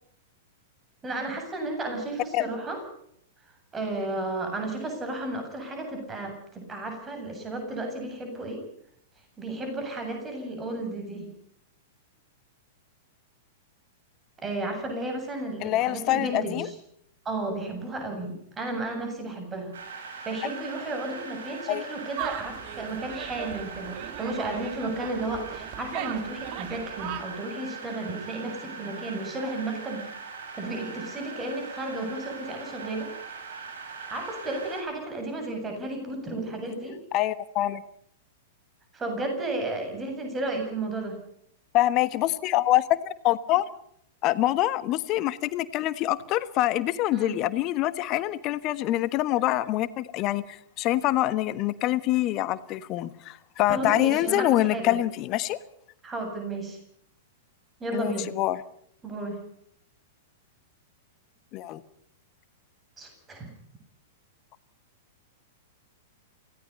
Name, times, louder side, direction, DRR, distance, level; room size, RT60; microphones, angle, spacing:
voice 1, 1.0-2.8 3.7-8.6 9.4-11.3 14.4-16.7 17.2-19.7 20.2-30.0 30.5-33.1 34.1-37.0 38.9-41.2 47.1-47.4 53.7-55.0 56.0-56.8 57.8-58.3 59.0-59.4 63.0-63.5, right 2 dB, 20° right, 4 dB, 7.9 m, -33 dB
voice 2, 15.6-16.7 21.7-21.8 37.1-37.8 41.7-43.0 43.2-43.6 44.2-55.6 57.9-58.6 61.5-61.8, left 15 dB, 35° left, 16 dB, 1.3 m, -25 dB
sound 1, 19.7-34.8, right 5 dB, 60° right, 7.4 m, -41 dB
sound 2, 22.2-27.2, right 11 dB, 40° right, 2.5 m, -38 dB
28.5 x 17.5 x 5.5 m, 0.69 s
figure-of-eight pair, 100°, 0 cm